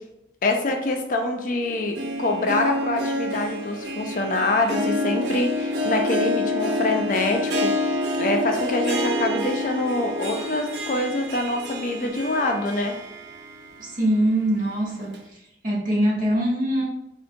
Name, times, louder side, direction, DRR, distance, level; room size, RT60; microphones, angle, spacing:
voice 1, 0.4-7.7 8.2-13.0, left 2 dB, 45° left, 4 dB, 0.4 m, -25 dB
Harp, 1.7-13.8 14.2-14.3 15.1-15.2, left 1 dB, 75° right, 0.4 m, -28 dB
voice 2, 13.8-15.1 15.6-16.8, right 1 dB, 45° right, -4 dB, 0.8 m, -22 dB
3.7 x 2.1 x 2.6 m, 0.88 s
head